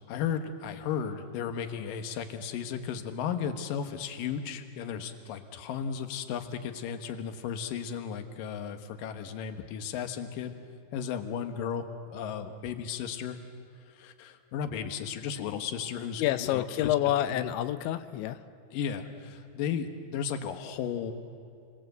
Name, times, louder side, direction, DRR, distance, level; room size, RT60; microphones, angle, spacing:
voice 1, 0.1-10.5 10.9-13.4 14.0-16.9 17.3-17.4 18.7-21.1, left 7 dB, 65° left, 7 dB, 2.5 m, -35 dB
voice 2, 16.2-18.4, left 13 dB, 85° left, 11 dB, 3.1 m, -28 dB
29.0 x 22.0 x 7.9 m, 2.3 s
omnidirectional pair, 5.2 m